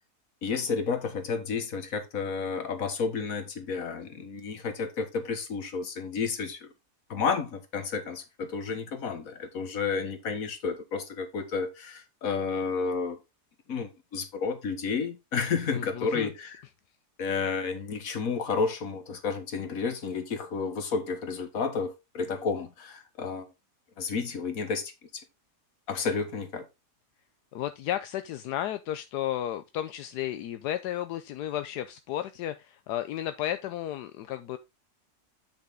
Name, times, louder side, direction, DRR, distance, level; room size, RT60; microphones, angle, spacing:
voice 1, 0.4-6.7 7.1-13.2 13.7-16.6 17.2-23.5 24.0-24.9 25.9-26.7, left 5 dB, 60° left, 1.8 m, -31 dB
voice 2, 15.7-16.3 27.5-34.6, left 12 dB, 85° left, 1.2 m, -33 dB
8.2 x 6.4 x 3.5 m
omnidirectional pair, 1.7 m